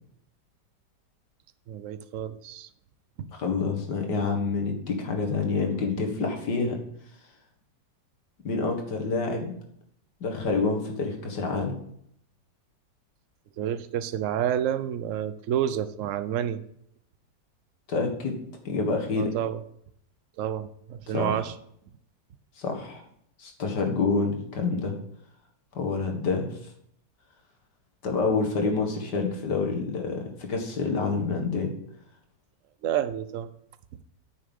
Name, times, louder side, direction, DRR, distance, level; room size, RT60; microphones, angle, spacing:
voice 1, 1.7-2.7 3.2-3.3 13.6-16.6 19.2-19.6 20.4-21.5 32.8-33.5, right 10 dB, 60° right, 13 dB, 0.8 m, -29 dB
voice 2, 3.3-6.8 8.4-9.6 10.2-11.8 17.9-18.4 18.6-19.3 21.1-21.4 22.6-23.0 23.4-24.9 25.7-26.6 28.0-31.7, left 4 dB, 70° left, 3 dB, 2.2 m, -27 dB
9.3 x 6.8 x 5.3 m, 0.70 s
omnidirectional pair, 1.9 m